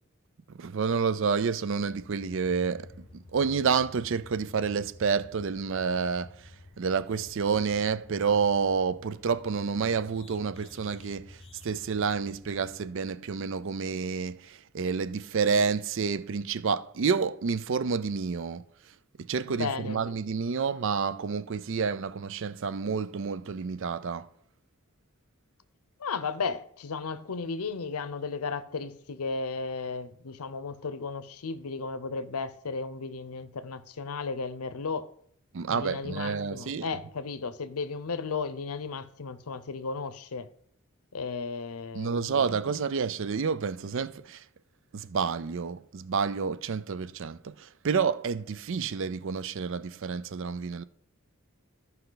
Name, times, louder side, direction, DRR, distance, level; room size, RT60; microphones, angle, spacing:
voice 1, 0.6-2.9 3.1-6.3 6.8-18.6 19.2-24.3 35.5-36.9 41.9-44.4 44.9-50.8, right 5 dB, 60° right, 0.4 m, -29 dB
sound 1, 1.9-13.2, left 2 dB, 25° left, 0.8 m, -51 dB
voice 2, 19.6-20.0 26.0-35.1 35.7-40.5 41.1-42.4, left 4 dB, 85° left, 0.7 m, -34 dB
14.0 x 5.5 x 3.9 m
head